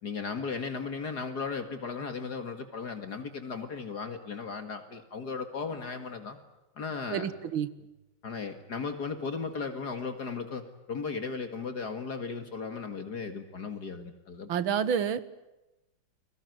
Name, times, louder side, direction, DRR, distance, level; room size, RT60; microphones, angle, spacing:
voice 1, 0.0-6.4 6.8-7.3 8.2-14.5, left 5 dB, 50° left, 8 dB, 2.4 m, -36 dB
voice 2, 7.1-7.7 14.5-15.3, right 8 dB, 75° right, 16 dB, 2.0 m, -29 dB
30.0 x 21.0 x 9.4 m, 1.0 s
omnidirectional pair, 2.3 m